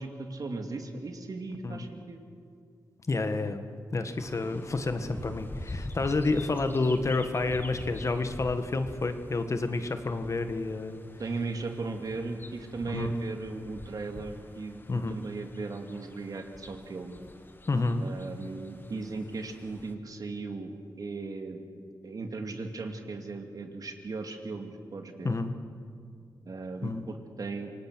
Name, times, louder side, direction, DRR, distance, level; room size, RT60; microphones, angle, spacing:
voice 1, 0.0-2.2 11.2-17.2 18.0-21.7 22.0-25.4 26.4-27.7, right 3 dB, 60° right, 4 dB, 2.4 m, -37 dB
voice 2, 3.1-3.6 3.9-11.0 12.9-13.1 14.9-15.2 17.7-18.0 25.2-25.5 26.8-27.0, left 3 dB, 45° left, 8 dB, 1.6 m, -29 dB
sound 1, 4.2-19.9, left 2 dB, 30° left, 1.8 m, -45 dB
27.0 x 18.0 x 6.3 m, 2.2 s
cardioid pair, 65°, 7 cm